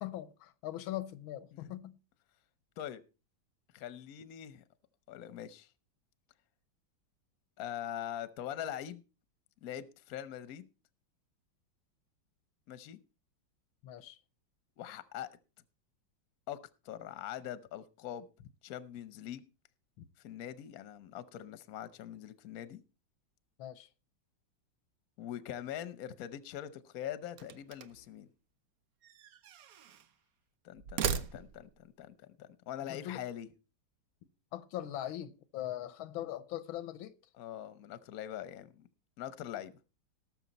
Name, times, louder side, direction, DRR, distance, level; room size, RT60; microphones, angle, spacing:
voice 1, 0.0-2.0 13.8-14.2 20.0-20.1 23.6-23.9 32.9-33.2 34.5-37.2, left 13 dB, 85° left, 1.6 m, -41 dB
voice 2, 3.7-4.6 5.1-5.7 7.6-9.0 9.6-10.7 12.7-13.0 14.8-15.3 16.5-16.6 16.8-18.3 18.6-19.4 20.2-22.8 25.2-28.3 30.6-33.5 37.4-38.9 39.2-39.7, left 10 dB, 55° left, 1.1 m, -43 dB
sound 1, 27.3-28.1 29.0-30.1 30.8-31.8, right 7 dB, 60° right, 1.0 m, -38 dB
18.5 x 6.8 x 4.1 m
omnidirectional pair, 2.2 m